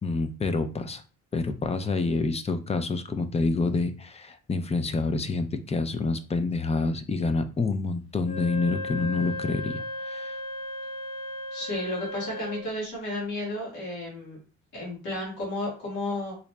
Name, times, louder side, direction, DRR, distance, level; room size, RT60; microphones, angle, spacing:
voice 1, 0.0-1.0 1.3-10.4, left 3 dB, 20° left, 10 dB, 0.4 m, -28 dB
Wind instrument woodwind instrument, 8.2-12.7, left 1 dB, 45° left, 0.9 m, -35 dB
voice 2, 11.5-14.4 14.7-16.4, left 1 dB, 90° left, -4 dB, 1.6 m, -32 dB
3.8 x 2.9 x 2.2 m, 0.35 s
cardioid pair, 90°, 30 cm